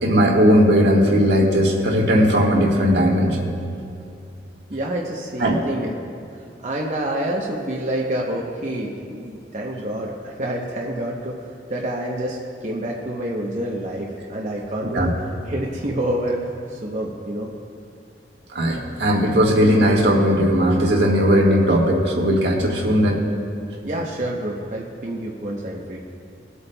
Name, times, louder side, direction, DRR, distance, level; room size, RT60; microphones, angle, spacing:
voice 1, 0.0-3.5 5.4-5.6 14.9-15.1 18.5-23.2, equal, 75° right, -1 dB, 1.5 m, -17 dB
voice 2, 4.7-6.0 6.6-12.4 12.6-16.4 16.7-17.5 23.8-26.0, right 1 dB, 45° right, -2 dB, 0.8 m, -28 dB
22.0 x 8.2 x 2.2 m, 2.4 s
head